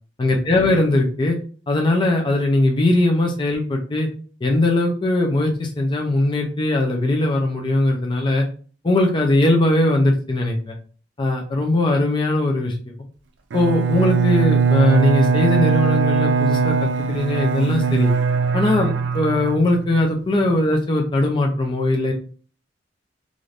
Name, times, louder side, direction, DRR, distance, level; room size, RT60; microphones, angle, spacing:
voice 1, 0.2-1.4 1.7-4.1 4.4-8.5 8.8-10.7 11.2-12.7 13.5-18.1 18.5-22.1, left 2 dB, 25° left, 1 dB, 0.5 m, -20 dB
Bowed string instrument, 13.5-20.1, right 5 dB, 75° right, 0.4 m, -20 dB
2.5 x 2.5 x 3.2 m, 0.41 s
head